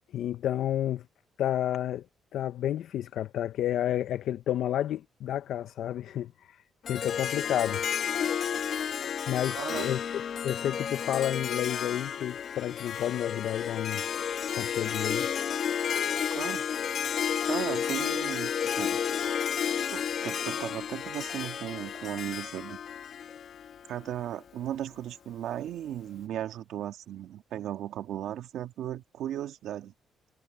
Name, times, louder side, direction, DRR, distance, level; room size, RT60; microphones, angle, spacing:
voice 1, 0.1-1.0 1.4-2.1 2.3-6.6 6.9-7.8 9.3-14.0 14.6-15.3, left 11 dB, 75° left, 0.7 m, -31 dB
Harp, 6.8-24.1, left 8 dB, 60° left, 1.7 m, -32 dB
voice 2, 9.6-9.9 16.3-16.6 17.5-19.0 19.9-22.8 23.9-29.9, right 11 dB, 80° right, 1.8 m, -36 dB
cardioid pair, 90°, 0 cm